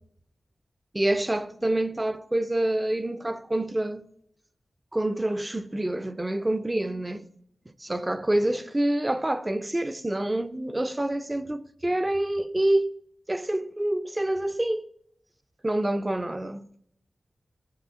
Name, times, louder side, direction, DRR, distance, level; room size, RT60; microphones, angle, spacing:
voice 1, 0.9-4.0 4.9-7.3 7.7-13.0 13.3-14.9 15.6-16.6, right 1 dB, 20° right, 0.4 m, -27 dB
15.0 x 7.9 x 2.4 m
wide cardioid pair, 110°, 0 cm